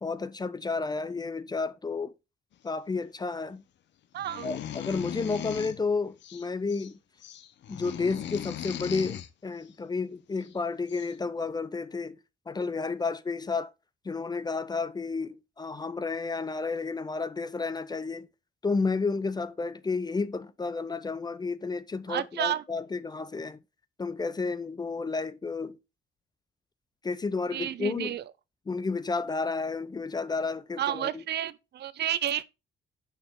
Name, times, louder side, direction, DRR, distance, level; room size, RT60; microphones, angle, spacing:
voice 1, 0.0-2.1 2.6-3.6 4.4-7.0 7.7-12.2 12.5-13.7 14.0-18.3 18.6-23.6 24.0-25.8 27.0-28.2 28.7-31.2, left 4 dB, 20° left, 0.4 m, -31 dB
voice 2, 4.1-4.5 22.1-22.6 27.5-28.2 30.8-32.4, right 11 dB, 60° right, 0.5 m, -31 dB
sound 1, 4.2-5.8 6.2-6.9 7.2-9.3 10.4-10.5 10.9-11.1, left 10 dB, 65° left, 0.7 m, -38 dB
6.7 x 5.7 x 3.6 m
cardioid pair, 90°, 20 cm